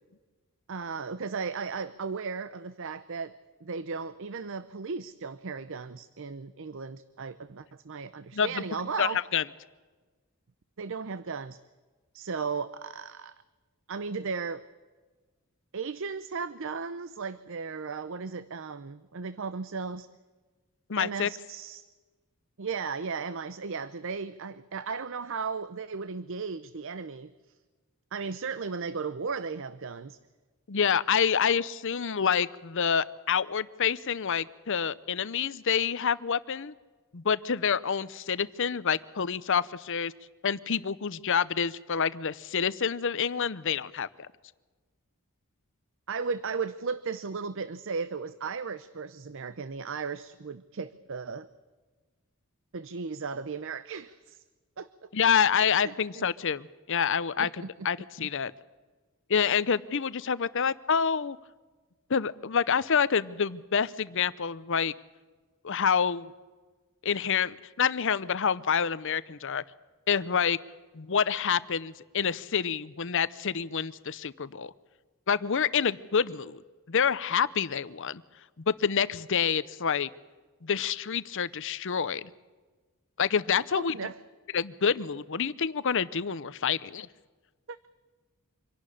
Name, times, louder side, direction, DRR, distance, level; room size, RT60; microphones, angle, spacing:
voice 1, 0.7-9.2 10.8-11.6 12.1-13.3 13.9-14.6 15.7-20.1 21.0-21.9 22.6-27.3 28.1-30.2 46.1-51.5 52.7-54.4 54.8-55.1 55.8-56.3 57.4-57.7 83.7-84.2 87.7-87.9, right 5 dB, 60° right, 15 dB, 0.7 m, -36 dB
voice 2, 8.3-8.6 9.0-9.4 20.9-21.3 30.7-36.7 37.1-40.1 40.4-44.3 55.1-58.5 59.3-61.4 62.1-64.9 65.6-66.3 67.0-69.6 70.1-70.6 70.9-74.7 75.3-76.6 76.9-78.2 78.7-80.1 80.6-82.3 83.2-83.9 84.5-87.1, left 7 dB, 60° left, 17 dB, 0.7 m, -27 dB
25.5 x 11.5 x 10.0 m, 1.3 s
head